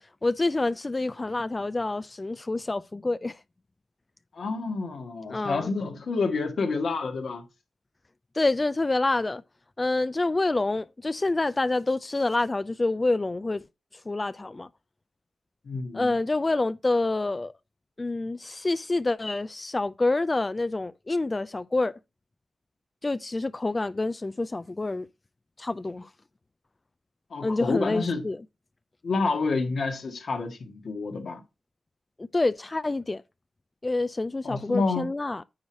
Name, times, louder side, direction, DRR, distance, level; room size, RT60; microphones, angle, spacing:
voice 1, 0.2-3.4 5.3-5.7 8.3-9.4 9.8-13.6 14.1-14.7 15.9-17.5 18.0-21.9 23.0-25.1 25.6-26.1 27.4-28.4 32.2-33.2 33.8-35.4, left 2 dB, 35° left, 0.4 m, -27 dB
voice 2, 4.3-7.4 15.7-16.1 27.3-28.3 29.0-31.4 34.4-35.1, left 4 dB, 75° left, 1.8 m, -29 dB
9.5 x 3.2 x 6.2 m
cardioid pair, 45°, 0 cm